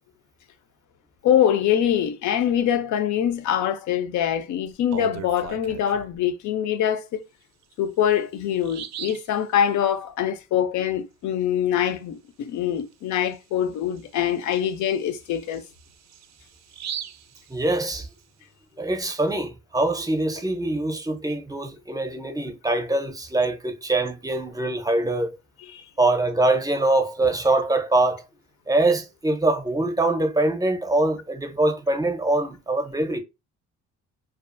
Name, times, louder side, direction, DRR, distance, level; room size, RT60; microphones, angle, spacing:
voice 1, 1.2-7.2 7.8-15.6 25.7-25.8, left 9 dB, 70° left, 0.5 m, -24 dB
Bird vocalization bird call bird song, 4.7-6.2 7.6-7.7 8.2-8.3 8.6-9.3 12.8-12.9 13.3-13.4 14.0-18.2, right 10 dB, 65° right, 0.4 m, -39 dB
voice 2, 17.5-18.1 18.8-25.4 26.0-28.2 28.7-33.2, right 2 dB, 10° right, 0.5 m, -23 dB
2.4 x 2.4 x 2.4 m
cardioid pair, 90°, 30 cm